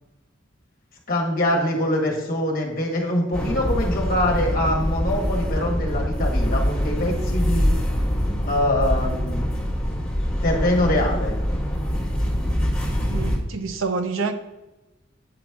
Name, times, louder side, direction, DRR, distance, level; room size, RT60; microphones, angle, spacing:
voice 1, 1.1-7.7 8.4-9.4 10.4-11.4, left 1 dB, 45° left, 0 dB, 1.4 m, -24 dB
sound 1, 3.3-13.4, equal, 5° left, 1.7 m, -24 dB
voice 2, 13.0-14.3, right 4 dB, 80° right, 7 dB, 0.7 m, -27 dB
8.6 x 3.0 x 4.7 m, 1.0 s
head